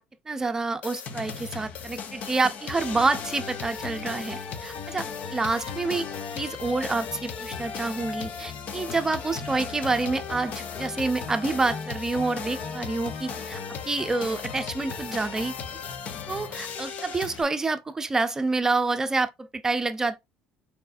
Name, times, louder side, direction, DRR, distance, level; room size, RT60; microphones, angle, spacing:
voice 1, 0.3-6.0 6.3-13.6 13.9-15.5 16.3-20.2, right 3 dB, 20° right, 0.6 m, -28 dB
sound 1, 0.8-17.4, left 6 dB, 55° left, 0.8 m, -36 dB
4.5 x 4.2 x 2.6 m
cardioid pair, 105°, 3 cm